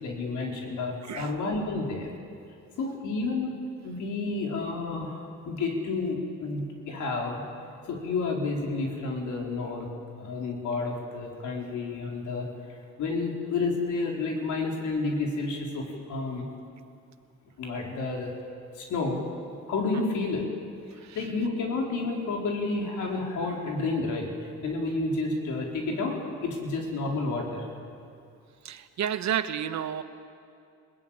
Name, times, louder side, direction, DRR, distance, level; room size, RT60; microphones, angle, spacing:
voice 1, 0.0-2.1 2.8-7.4 7.9-9.9 10.2-16.5 17.6-18.3 18.8-19.2 19.7-20.5 21.1-27.6, left 3 dB, 75° left, 0 dB, 4.3 m, -30 dB
voice 2, 28.6-30.0, right 9 dB, 65° right, 10 dB, 1.2 m, -30 dB
21.5 x 18.0 x 8.8 m, 2.4 s
cardioid pair, 90°, 30 cm